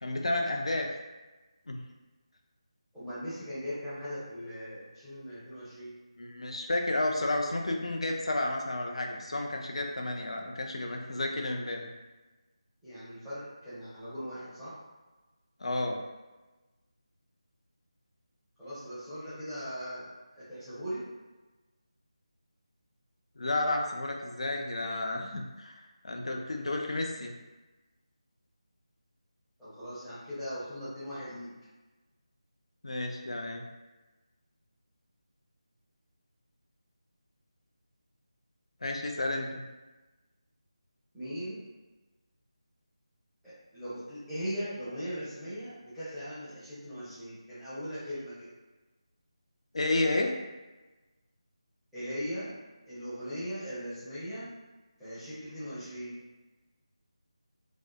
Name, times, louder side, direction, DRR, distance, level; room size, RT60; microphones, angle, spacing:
voice 1, 0.0-0.9 1.7-1.8 6.2-11.9 15.6-16.0 23.4-25.7 26.0-27.3 32.8-33.6 38.8-39.7 49.7-50.4, left 2 dB, 70° left, 2 dB, 0.4 m, -31 dB
voice 2, 2.9-5.9 12.8-14.7 18.6-21.1 29.6-31.5 41.1-41.6 43.4-48.5 51.9-52.5 52.9-54.5 55.0-56.1, equal, ahead, -17 dB, 0.7 m, -39 dB
2.6 x 2.1 x 2.2 m, 1.2 s
figure-of-eight pair, 165°, 3 cm